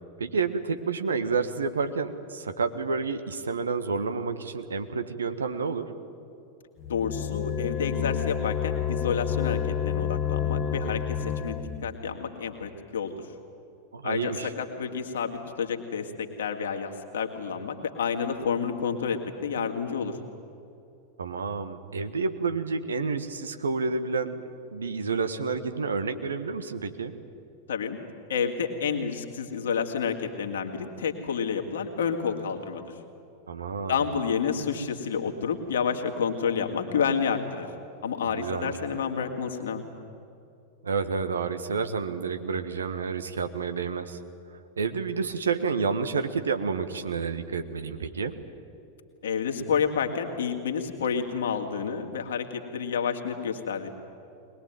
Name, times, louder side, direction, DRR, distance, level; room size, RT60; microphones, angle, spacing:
voice 1, 0.2-5.9 13.9-14.5 21.2-24.4 24.7-27.1 33.5-34.0 38.2-38.7 40.8-44.2 44.8-48.4, right 5 dB, 70° right, 9 dB, 1.4 m, -29 dB
sound 1, 6.8-11.9, left 8 dB, 30° left, 1.3 m, -29 dB
voice 2, 6.9-9.6 9.8-13.1 14.0-19.2 19.4-20.1 27.7-28.0 28.3-32.8 33.9-37.7 38.0-39.8 49.2-53.9, left 6 dB, 65° left, 4 dB, 2.3 m, -29 dB
22.5 x 20.5 x 9.2 m, 2.7 s
figure-of-eight pair, 90°, 0 cm